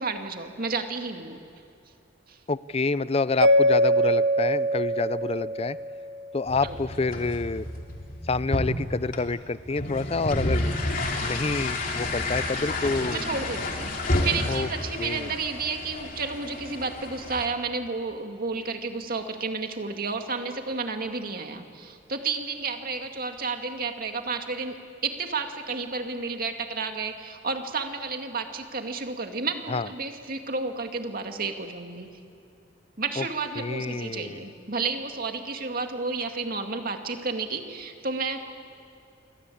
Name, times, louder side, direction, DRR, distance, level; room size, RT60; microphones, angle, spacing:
voice 1, 0.0-1.4 2.3-2.4 6.6-6.8 13.1-13.9 14.2-24.8 25.0-32.1 33.0-38.4, right 4 dB, 50° right, 5 dB, 2.2 m, -31 dB
voice 2, 2.5-5.8 6.3-7.7 8.3-10.7 11.2-13.2 14.5-14.7 15.0-15.3 29.7-29.9 33.2-33.3 33.6-34.4, left 3 dB, 30° left, 16 dB, 0.5 m, -28 dB
Mallet percussion, 3.4-6.4, equal, 70° right, 1.1 m, -23 dB
sound 1, 6.5-17.5, left 1 dB, 45° left, 3.1 m, -30 dB
28.0 x 24.5 x 8.6 m, 2.7 s
head